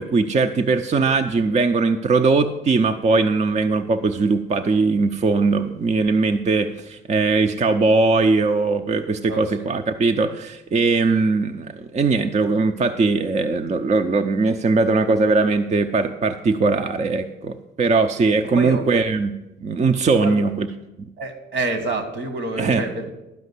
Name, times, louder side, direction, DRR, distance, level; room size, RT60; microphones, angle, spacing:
voice 1, 0.0-19.3 19.6-20.7 22.6-22.8, right 3 dB, 35° right, 6 dB, 0.6 m, -20 dB
voice 2, 9.3-9.7 18.5-18.9 20.2-20.4 21.2-23.1, right 2 dB, 75° right, 8 dB, 1.8 m, -28 dB
12.0 x 5.1 x 8.2 m, 0.97 s
cardioid pair, 90°, 20 cm